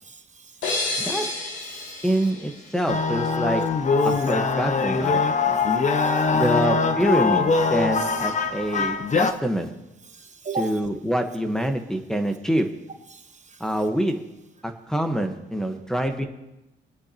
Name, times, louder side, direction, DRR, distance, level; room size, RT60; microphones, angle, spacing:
voice 1, 0.0-1.3 1.7-1.9 4.0-4.3 6.0-6.6 8.4-8.9 10.1-10.8 13.1-13.6 15.7-15.8, right 4 dB, 35° right, 7 dB, 1.0 m, -39 dB
sound 1, 0.6-3.4, left 2 dB, 75° left, 2.2 m, -31 dB
voice 2, 2.0-3.6 4.0-5.2 6.3-9.7 10.6-12.7 13.6-14.2 14.9-16.3, equal, 5° left, 6 dB, 1.2 m, -25 dB
sound 2, 2.9-9.3, left 4 dB, 35° left, 1.0 m, -22 dB
23.5 x 9.6 x 3.0 m, 0.97 s
cardioid pair, 90°, 20 cm